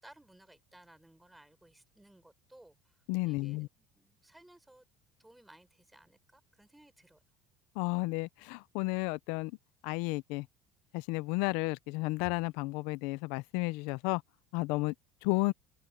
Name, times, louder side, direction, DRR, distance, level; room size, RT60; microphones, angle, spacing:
voice 1, 0.0-3.0 3.2-4.9 5.2-7.2, right 1 dB, 5° right, 6.1 m, -59 dB
voice 2, 3.1-3.7 7.8-9.5 9.8-10.5 10.9-14.2 14.5-14.9 15.2-15.5, left 24 dB, 75° left, 0.5 m, -32 dB
open air
cardioid pair, 170°, 0 cm